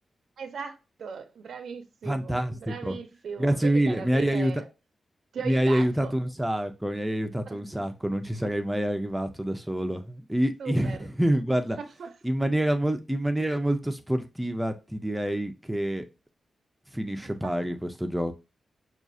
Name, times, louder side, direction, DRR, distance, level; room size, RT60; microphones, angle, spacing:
voice 1, 0.4-4.7 5.3-6.1 7.5-7.9 10.6-11.0 11.8-12.1 17.4-17.5, right 6 dB, 75° right, 0.5 m, -38 dB
voice 2, 2.0-3.0 3.4-4.5 5.4-11.8 12.2-16.0 16.9-18.3, right 1 dB, 5° right, 0.6 m, -27 dB
6.0 x 2.4 x 2.6 m
wide cardioid pair, 110°, 0 cm